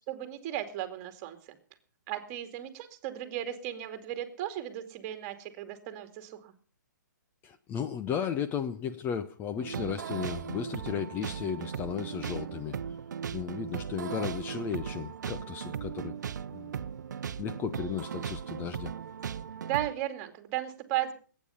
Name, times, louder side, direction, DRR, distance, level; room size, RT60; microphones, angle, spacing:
voice 1, 0.1-1.6 2.1-6.5 19.6-21.1, right 13 dB, 35° right, 9 dB, 2.4 m, -35 dB
voice 2, 7.4-12.8 13.3-16.1 16.5-16.7 17.4-18.9, left 8 dB, 20° left, 10 dB, 0.8 m, -35 dB
sound 1, 9.6-19.9, right 8 dB, 65° right, 0.8 m, -37 dB
21.0 x 9.4 x 5.7 m, 0.41 s
hypercardioid pair, 135°, 10 cm